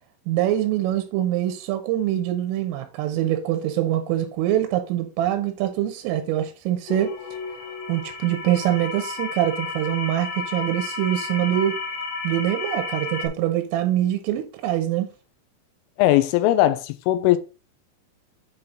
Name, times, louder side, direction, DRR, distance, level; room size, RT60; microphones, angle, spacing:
voice 1, 0.3-7.1 7.9-11.8 12.2-15.1, right 12 dB, 90° right, 3.5 m, -24 dB
sound 1, 6.9-13.3, left 4 dB, 70° left, 4.0 m, -32 dB
voice 2, 16.0-17.4, left 14 dB, 85° left, 3.2 m, -19 dB
8.4 x 4.4 x 3.7 m
omnidirectional pair, 5.7 m